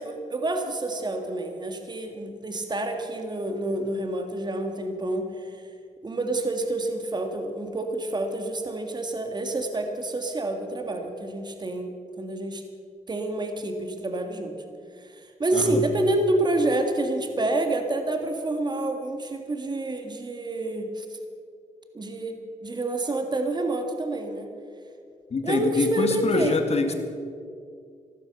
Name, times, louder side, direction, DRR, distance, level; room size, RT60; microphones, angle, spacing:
voice 1, 0.0-5.6 6.0-12.6 13.1-14.6 15.0-21.1 21.9-24.5 25.4-26.6 26.9-27.0, right 2 dB, 35° right, 5 dB, 1.8 m, -28 dB
voice 2, 25.3-26.9, left 4 dB, 50° left, 6 dB, 1.9 m, -25 dB
15.0 x 12.5 x 6.7 m, 2.3 s
cardioid pair, 75°, 13 cm